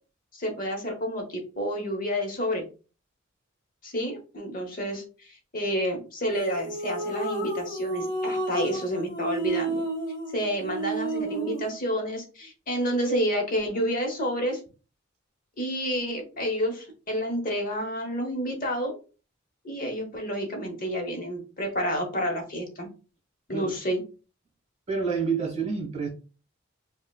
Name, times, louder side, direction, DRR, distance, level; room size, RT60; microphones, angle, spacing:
voice 1, 0.4-2.7 3.8-9.8 10.3-14.6 15.6-19.0 19.6-22.9 23.5-24.0, equal, 45° left, 3 dB, 1.0 m, -29 dB
sound 1, 6.3-11.7, right 2 dB, 25° left, 1.0 m, -31 dB
voice 2, 24.9-26.1, right 5 dB, 35° right, 0 dB, 1.3 m, -28 dB
5.4 x 2.3 x 2.3 m, 0.34 s
head